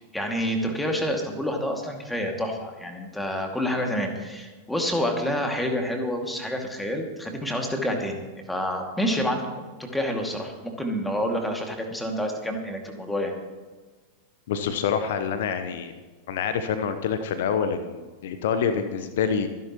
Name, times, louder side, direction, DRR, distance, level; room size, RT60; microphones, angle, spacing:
voice 1, 0.0-8.2 8.5-13.3, equal, 5° left, 2 dB, 2.3 m, -28 dB
voice 2, 14.5-15.9 16.3-19.5, left 7 dB, 55° left, 9 dB, 0.9 m, -26 dB
25.0 x 11.0 x 3.1 m, 1.3 s
figure-of-eight pair, 90°, 0 cm